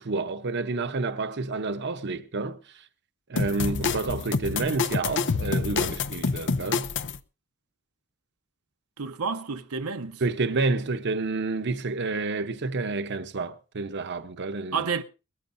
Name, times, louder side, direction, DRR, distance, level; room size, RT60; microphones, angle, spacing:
voice 1, 0.0-2.8 3.3-6.9 10.2-14.9, right 3 dB, 55° right, 0.8 m, -29 dB
sound 1, 3.4-7.2, left 4 dB, 55° left, 0.6 m, -27 dB
voice 2, 4.5-4.8 9.0-10.2 14.7-15.0, right 5 dB, 85° right, 0.8 m, -30 dB
21.5 x 14.0 x 2.6 m
head